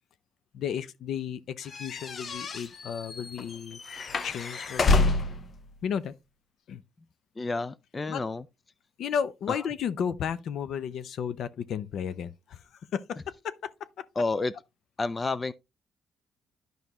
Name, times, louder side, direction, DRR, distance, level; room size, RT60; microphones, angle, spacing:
voice 1, 0.5-3.8 4.2-5.1 5.8-6.1 6.7-6.8 8.1-8.2 9.0-12.6 12.9-14.0, left 8 dB, 70° left, 0.6 m, -33 dB
sound 1, 1.7-5.5, left 3 dB, 45° left, 0.8 m, -28 dB
voice 2, 7.4-8.5 9.5-9.7 14.2-14.5 15.0-15.5, left 3 dB, 25° left, 0.4 m, -30 dB
11.0 x 5.3 x 2.9 m
cardioid pair, 90°, 0 cm